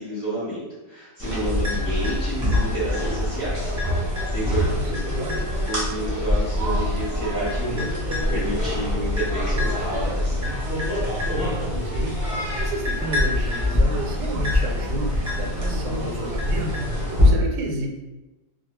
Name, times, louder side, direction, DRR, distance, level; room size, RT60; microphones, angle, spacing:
voice 1, 0.0-3.7 4.0-4.6 4.9-5.0 5.6-10.4, right 1 dB, 10° left, -14 dB, 0.9 m, -30 dB
sound 1, 1.2-17.3, left 1 dB, 25° right, 0.4 m, -24 dB
voice 2, 4.6-5.4 11.2-17.9, right 2 dB, 80° right, 1 dB, 1.1 m, -32 dB
2.5 x 2.2 x 3.0 m, 1.1 s
omnidirectional pair, 1.7 m